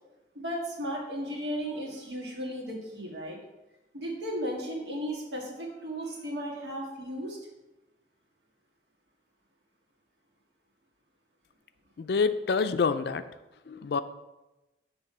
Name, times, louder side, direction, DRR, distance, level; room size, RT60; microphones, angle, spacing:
voice 1, 0.3-3.4 3.9-7.4, equal, 75° right, -1 dB, 1.7 m, -35 dB
voice 2, 12.0-13.2 13.7-14.0, left 5 dB, 65° left, 11 dB, 0.4 m, -27 dB
7.1 x 3.4 x 5.5 m, 1.0 s
head